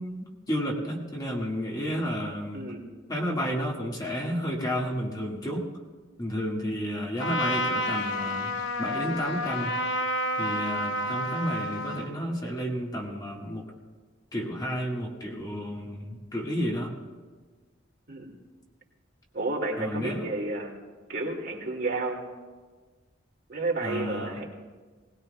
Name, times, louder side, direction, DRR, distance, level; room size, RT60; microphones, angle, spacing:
voice 1, 0.0-2.7 3.1-5.7 6.2-9.8 10.4-13.7 14.3-17.0 19.8-20.3 23.8-24.4, equal, 20° left, -2 dB, 1.6 m, -31 dB
voice 2, 2.5-2.9 18.1-18.3 19.3-20.7 21.1-22.2 23.5-24.5, right 2 dB, 60° right, -1 dB, 2.4 m, -31 dB
Trumpet, 7.2-12.1, left 1 dB, 75° left, 0.9 m, -30 dB
20.5 x 19.0 x 2.2 m, 1.4 s
head